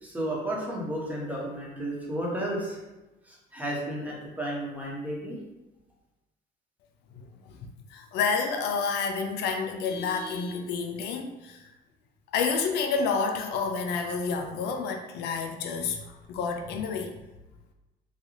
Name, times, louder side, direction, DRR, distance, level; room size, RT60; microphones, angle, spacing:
voice 1, 0.0-2.8 3.3-5.4, right 1 dB, 10° right, -4 dB, 1.1 m, -33 dB
voice 2, 7.1-11.7 12.3-17.1, left 5 dB, 80° left, 5 dB, 0.4 m, -29 dB
3.7 x 2.3 x 3.1 m, 1.0 s
cardioid pair, 110°, 17 cm